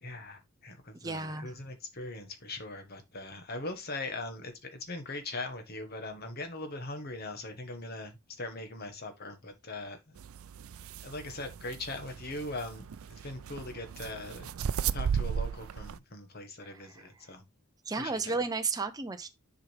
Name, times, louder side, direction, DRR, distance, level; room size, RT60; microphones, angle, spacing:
voice 1, 0.0-10.2 11.0-14.5 14.9-17.4 18.0-18.4, left 2 dB, 45° left, 1.4 m, -41 dB
voice 2, 0.9-1.5 16.6-17.0 17.9-19.3, right 4 dB, 15° right, 0.6 m, -33 dB
sound 1, 10.2-16.0, right 7 dB, 75° right, 0.4 m, -36 dB
7.6 x 4.9 x 3.3 m
head